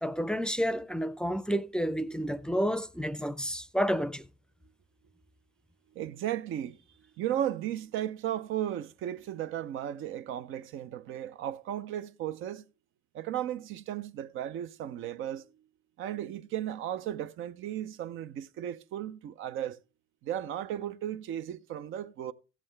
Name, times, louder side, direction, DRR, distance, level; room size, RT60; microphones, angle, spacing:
voice 1, 0.0-4.3, equal, 5° left, 0.4 m, -30 dB
voice 2, 5.9-6.8 7.2-12.6 13.1-15.5 16.0-19.8 20.2-22.3, right 11 dB, 80° right, 0.5 m, -35 dB
15.0 x 7.5 x 3.3 m
cardioid pair, 90°, 20 cm